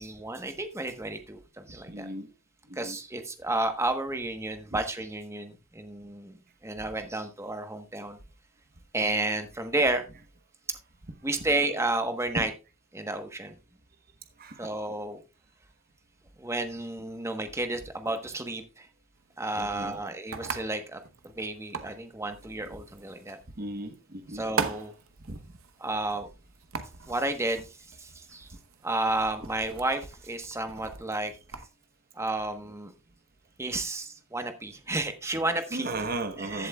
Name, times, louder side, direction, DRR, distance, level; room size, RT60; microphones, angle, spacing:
voice 1, 0.0-2.1 2.7-6.4 6.6-8.2 8.9-10.0 11.2-12.5 12.9-13.6 14.6-15.2 16.4-18.9 19.4-21.0 21.3-23.4 24.3-24.9 25.8-26.3 27.1-28.5 28.8-31.3 32.1-32.9 33.6-35.9 36.5-36.7, right 2 dB, 15° right, 1.1 m, -31 dB
voice 2, 1.9-2.3 2.7-3.0 12.4-12.5 14.4-14.7 19.5-20.0 23.6-24.5 25.3-25.4 35.7-36.7, right 2 dB, 45° right, 1.1 m, -35 dB
sound 1, 19.2-31.7, right 5 dB, 85° right, 1.0 m, -40 dB
14.5 x 7.8 x 2.3 m
head